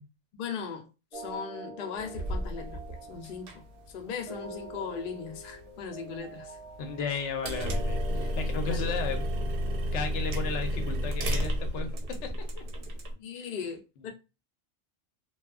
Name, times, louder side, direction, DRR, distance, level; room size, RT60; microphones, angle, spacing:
voice 1, 0.3-6.6 8.7-8.9 13.2-14.1, left 6 dB, 60° left, 0.6 m, -38 dB
sound 1, 1.1-10.3, right 2 dB, 10° right, 0.8 m, -45 dB
sound 2, 2.0-13.1, equal, 60° right, 0.8 m, -33 dB
voice 2, 6.8-9.3 9.9-11.9 12.2-12.3 12.6-12.7 13.3-13.5, left 5 dB, 80° left, 0.9 m, -34 dB
2.7 x 2.2 x 2.3 m
omnidirectional pair, 1.2 m